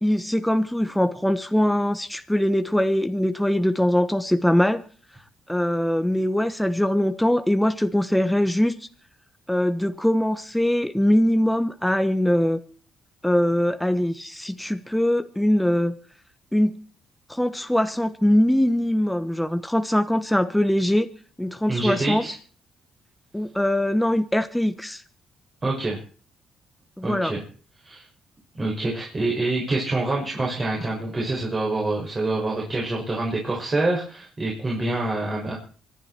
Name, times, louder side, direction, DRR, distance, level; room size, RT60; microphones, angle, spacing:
voice 1, 0.0-4.8 5.5-8.7 9.5-12.6 13.2-16.0 16.5-16.7 17.3-21.1 21.4-22.2 23.3-25.0 27.0-27.3, left 1 dB, 5° left, 9 dB, 1.2 m, -22 dB
voice 2, 21.7-22.3 25.6-26.0 27.0-27.4 27.8-28.0 28.5-35.5, right 2 dB, 30° right, -2 dB, 6.5 m, -26 dB
25.0 x 11.5 x 4.5 m, 0.43 s
cardioid pair, 90°, 0 cm